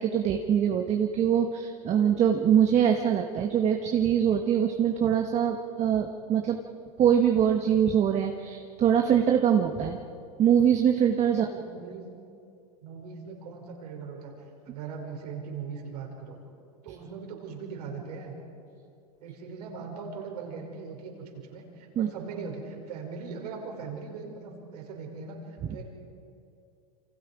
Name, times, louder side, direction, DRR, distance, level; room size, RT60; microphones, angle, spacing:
voice 1, 0.0-6.6 7.0-10.0 10.4-11.5 21.9-22.1, right 8 dB, 35° right, 4 dB, 1.4 m, -23 dB
voice 2, 11.3-12.0 12.8-14.3 14.7-16.4 16.8-18.3 19.2-25.8, right 5 dB, 80° right, 1 dB, 5.7 m, -40 dB
28.5 x 25.5 x 5.1 m, 2.5 s
hypercardioid pair, 115°, 20 cm